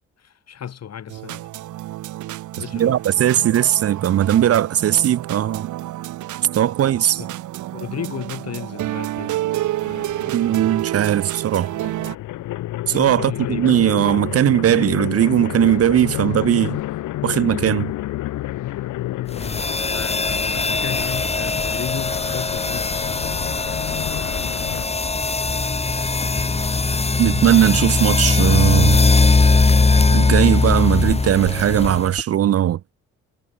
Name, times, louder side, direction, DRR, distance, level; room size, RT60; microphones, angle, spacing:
voice 1, 0.2-1.5 2.6-3.0 7.2-7.3 7.7-9.4 13.1-13.8 19.3-23.5, left 9 dB, 55° left, 5.5 m, -34 dB
sound 1, 1.1-12.1, right 14 dB, 75° right, 1.1 m, -29 dB
voice 2, 2.7-5.7 6.5-7.2 10.3-11.7 12.9-16.8 17.2-17.9 27.2-29.0 30.1-32.9, right 11 dB, 50° right, 0.7 m, -18 dB
sound 2, 9.8-11.0 11.4-24.9, left 15 dB, 80° left, 1.2 m, -30 dB
sound 3, 19.3-32.2, left 3 dB, 20° left, 2.0 m, -20 dB
cardioid pair, 90°, 30 cm